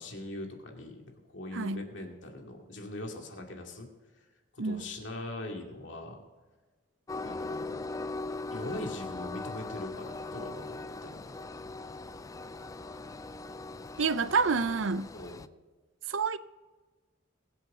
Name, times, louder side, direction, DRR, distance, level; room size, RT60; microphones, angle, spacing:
voice 1, 0.0-3.9 4.5-6.2 7.2-7.8 8.5-11.4 15.1-15.4, left 1 dB, 70° left, 2.4 m, -41 dB
Train, 7.1-15.5, left 3 dB, 15° left, 0.3 m, -40 dB
voice 2, 14.0-15.1 16.1-16.4, right 5 dB, 85° right, 0.6 m, -28 dB
22.5 x 8.0 x 3.8 m
head